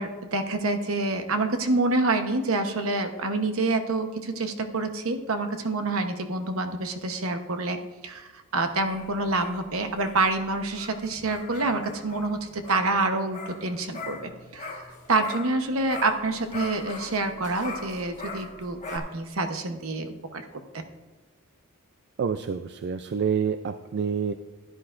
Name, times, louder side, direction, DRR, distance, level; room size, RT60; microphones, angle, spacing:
voice 1, 0.0-7.8 8.0-14.8 15.1-20.5 20.7-20.8, right 2 dB, 70° right, 7 dB, 1.0 m, -27 dB
sound 1, 8.6-15.6 15.9-19.0, left 3 dB, 35° left, 1.5 m, -41 dB
voice 2, 22.2-24.3, right 6 dB, 50° right, 9 dB, 0.4 m, -27 dB
16.0 x 10.5 x 2.5 m, 1.3 s
head